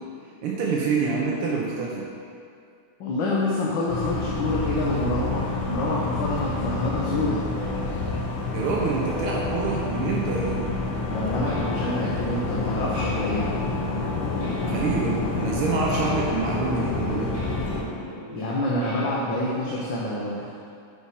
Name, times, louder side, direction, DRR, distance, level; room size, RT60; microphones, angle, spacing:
voice 1, 0.4-2.0 8.5-10.7 14.6-17.3, right 4 dB, 90° right, -3 dB, 1.6 m, -26 dB
voice 2, 3.0-7.4 11.1-13.5 18.3-20.4, left 1 dB, 65° left, -5 dB, 1.4 m, -27 dB
sound 1, 3.9-17.8, left 3 dB, 80° left, 1.6 m, -28 dB
Guitar, 11.1-19.7, left 1 dB, 65° right, 2.2 m, -41 dB
5.6 x 4.7 x 5.5 m, 2.4 s
omnidirectional pair, 2.3 m